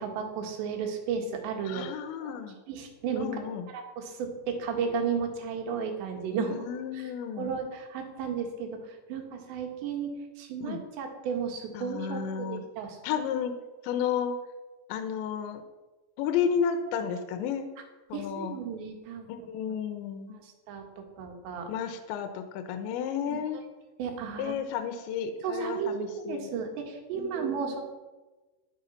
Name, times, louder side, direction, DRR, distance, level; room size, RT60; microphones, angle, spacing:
voice 1, 0.0-1.9 2.2-2.4 2.7-3.3 3.7-6.6 6.9-7.1 7.4-10.1 10.4-13.0 18.1-19.3 20.4-21.7 23.3-23.6 24.0-24.6 25.4-27.8, right 6 dB, 75° right, 2 dB, 3.9 m, -34 dB
voice 2, 1.7-2.6 3.2-3.7 6.3-7.5 10.6-10.8 11.7-12.6 13.0-13.5 13.8-14.4 14.9-15.6 16.2-17.7 18.1-18.6 19.3-20.4 21.7-23.6 24.4-26.5 27.1-27.8, left 7 dB, 85° left, 7 dB, 3.2 m, -32 dB
11.5 x 11.0 x 5.7 m, 1.2 s
omnidirectional pair, 5.3 m